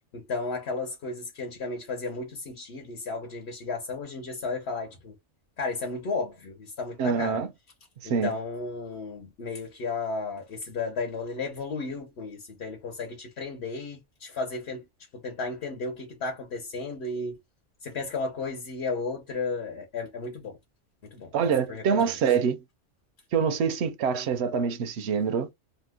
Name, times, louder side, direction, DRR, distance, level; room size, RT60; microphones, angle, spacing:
voice 1, 0.1-5.1 5.6-7.4 8.0-14.8 15.1-17.4 17.8-20.6 21.0-21.3 21.7-22.1, left 3 dB, 60° left, 1.1 m, -34 dB
voice 2, 7.0-7.5 8.0-8.3 21.3-22.6 23.3-25.5, right 6 dB, 70° right, 0.8 m, -25 dB
2.9 x 2.1 x 3.4 m
omnidirectional pair, 1.2 m